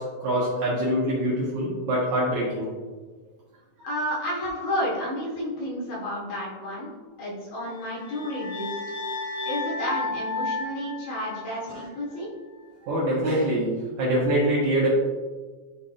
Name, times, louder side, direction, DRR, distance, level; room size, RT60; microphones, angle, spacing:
voice 1, 0.0-2.7 11.7-11.8 12.8-14.9, right 1 dB, 80° right, -6 dB, 1.7 m, -24 dB
voice 2, 3.8-6.9 7.2-8.7 9.4-12.3, equal, 60° left, -5 dB, 3.2 m, -31 dB
sound 1, 7.7-11.9, left 3 dB, 85° left, 2.4 m, -33 dB
11.5 x 4.2 x 2.5 m, 1.4 s
omnidirectional pair, 5.3 m